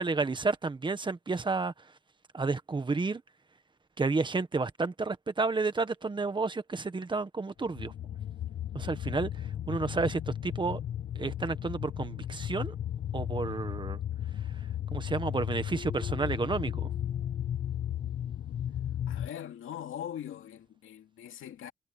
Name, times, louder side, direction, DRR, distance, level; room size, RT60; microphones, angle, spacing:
voice 1, 0.0-1.7 2.3-3.2 4.0-7.9 8.7-9.3 9.7-10.8 11.1-12.7 13.1-14.0 14.9-16.9, right 3 dB, 25° right, 1.5 m, -31 dB
sound 1, 7.6-19.3, left 10 dB, 55° left, 0.8 m, -35 dB
Keyboard (musical), 15.7-18.5, left 5 dB, 35° left, 7.5 m, -51 dB
voice 2, 19.1-21.7, left 10 dB, 85° left, 2.5 m, -41 dB
cardioid pair, 130°, 20 cm